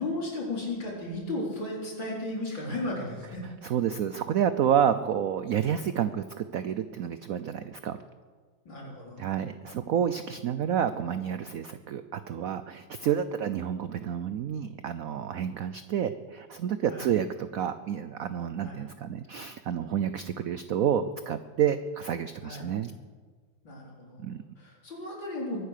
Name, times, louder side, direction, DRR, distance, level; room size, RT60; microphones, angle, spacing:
voice 1, 0.0-3.4 8.6-9.2 16.9-17.1 18.6-18.8 22.4-22.7 23.6-24.3 24.6-25.6, left 2 dB, 70° left, -3 dB, 5.1 m, -35 dB
voice 2, 3.6-8.0 9.2-22.9 24.2-24.4, right 9 dB, 75° right, 12 dB, 0.7 m, -29 dB
22.5 x 9.4 x 6.6 m, 1.5 s
omnidirectional pair, 2.1 m